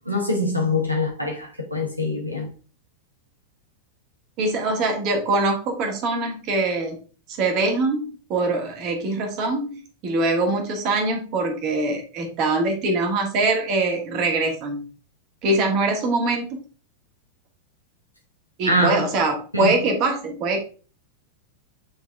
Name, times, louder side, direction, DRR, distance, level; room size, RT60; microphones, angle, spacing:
voice 1, 0.1-2.5 18.6-19.0 19.5-19.7, left 1 dB, 90° right, 1.1 m, -24 dB
voice 2, 4.4-7.0 7.3-14.8 15.4-16.6 18.6-20.6, right 2 dB, 40° right, 1.9 m, -23 dB
9.0 x 3.6 x 3.6 m
figure-of-eight pair, 90°, 0 cm